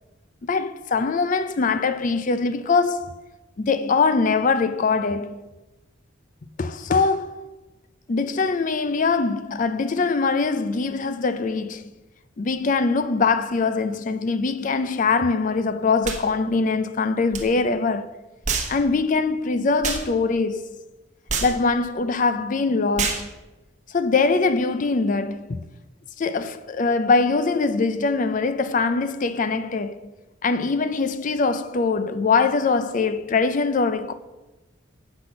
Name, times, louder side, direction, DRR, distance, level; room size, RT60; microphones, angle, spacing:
voice 1, 0.4-3.2 3.6-5.4 6.6-7.5 8.1-11.8 12.4-18.1 18.7-20.8 21.4-23.3 23.9-25.6 26.2-30.1 30.4-34.1, left 4 dB, 40° left, 0.4 m, -22 dB
sound 1, 16.0-16.2 17.3-17.5 18.5-18.8 19.8-20.1 21.3-21.6 23.0-23.3, right 5 dB, 35° right, 1.2 m, -26 dB
8.0 x 5.8 x 6.7 m
head